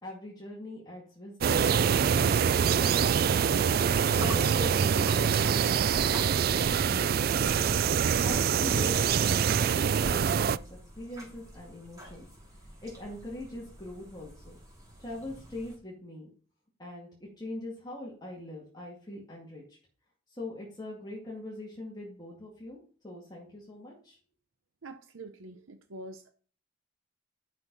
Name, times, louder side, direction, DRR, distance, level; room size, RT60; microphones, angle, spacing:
voice 1, 0.0-3.6 4.1-7.7 8.0-9.7 10.0-12.3 12.8-14.6 15.0-16.3 16.8-19.8 20.3-22.8 23.0-24.2, left 1 dB, 20° left, -5 dB, 2.2 m, -42 dB
sound 1, 1.4-10.6, right 7 dB, 50° right, 0.3 m, -25 dB
sound 2, 4.1-15.8, equal, 20° right, 3.0 m, -45 dB
voice 2, 24.8-26.3, right 2 dB, 90° right, 8 dB, 0.8 m, -45 dB
11.0 x 6.4 x 4.1 m, 0.43 s
head